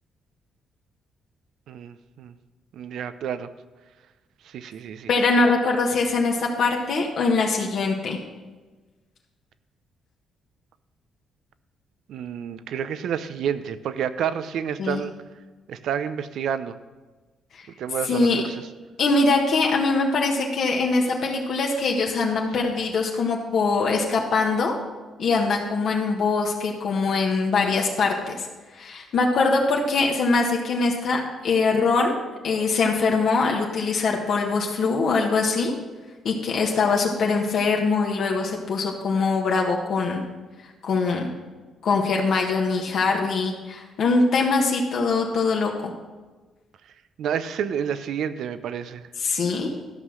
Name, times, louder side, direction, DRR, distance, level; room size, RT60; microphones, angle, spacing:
voice 1, 1.7-2.3 2.7-3.5 4.4-5.1 12.1-15.1 15.7-16.8 17.8-18.7 47.2-49.0, right 8 dB, 75° right, 13 dB, 0.6 m, -29 dB
voice 2, 5.1-8.2 14.8-15.0 17.5-17.6 18.1-18.4 19.0-24.7 25.2-28.5 28.7-32.1 32.4-35.7 36.2-40.2 40.8-41.3 41.8-45.9 49.2-49.7, left 4 dB, 65° left, 0 dB, 1.5 m, -22 dB
13.0 x 5.6 x 6.3 m, 1.3 s
cardioid pair, 90°, 0 cm